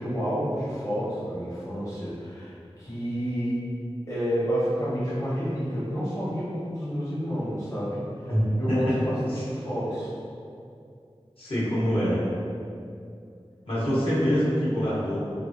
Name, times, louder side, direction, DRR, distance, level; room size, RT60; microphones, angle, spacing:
voice 1, 0.0-3.6 4.1-8.3 8.6-10.1 13.8-14.0, equal, 30° left, -10 dB, 0.7 m, -29 dB
voice 2, 11.4-12.2 13.7-15.2, equal, 65° left, -10 dB, 0.9 m, -25 dB
3.2 x 2.2 x 2.6 m, 2.4 s
wide cardioid pair, 40°, 11 cm